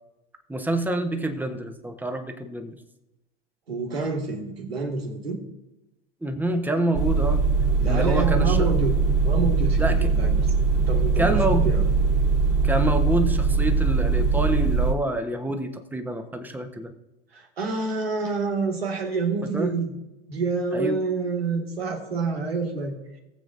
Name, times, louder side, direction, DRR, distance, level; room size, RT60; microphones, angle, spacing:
voice 1, 0.5-2.8 6.2-7.4 7.8-8.7 9.8-10.1 11.2-11.7 12.6-16.9 19.4-19.8 20.7-21.0, right 1 dB, 5° right, 6 dB, 1.2 m, -27 dB
voice 2, 3.7-5.4 7.8-9.0 9.2-10.5 10.9-11.9 17.3-19.9 20.3-23.2, right 4 dB, 85° right, 1 dB, 2.1 m, -28 dB
sound 1, 6.9-14.9, right 4 dB, 50° right, 3.4 m, -21 dB
19.0 x 7.5 x 2.7 m, 0.97 s
hypercardioid pair, 80°, 30 cm